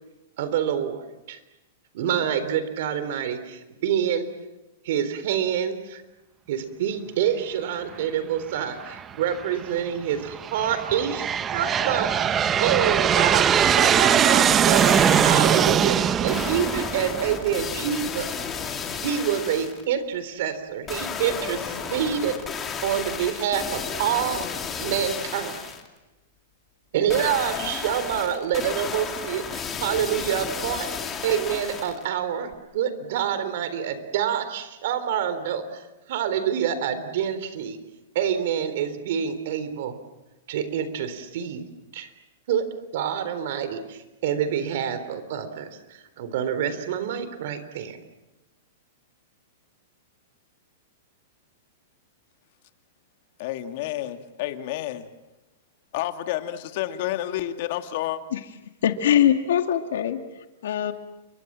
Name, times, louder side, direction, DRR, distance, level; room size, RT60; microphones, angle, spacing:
voice 1, 0.4-1.4 1.9-4.3 4.8-6.0 6.5-12.3 12.6-18.3 19.0-22.3 22.8-24.5 24.8-25.7 26.9-30.9 31.2-37.8 38.1-40.0 40.5-41.6 41.9-42.1 42.5-42.7 42.9-48.0, right 9 dB, 55° right, 3.8 m, -27 dB
Aircraft, 8.9-9.4 10.1-17.7, right 8 dB, 20° right, 0.9 m, -21 dB
sound 1, 14.5-15.8 16.3-19.8 20.9-25.9 27.1-32.1 32.5-32.6, left 6 dB, 15° left, 2.8 m, -33 dB
voice 2, 53.4-55.1 55.9-58.2, left 13 dB, 45° left, 2.1 m, -30 dB
voice 3, 58.8-60.9, left 10 dB, 75° left, 2.1 m, -22 dB
30.0 x 24.0 x 7.6 m
supercardioid pair, 160°, 0 cm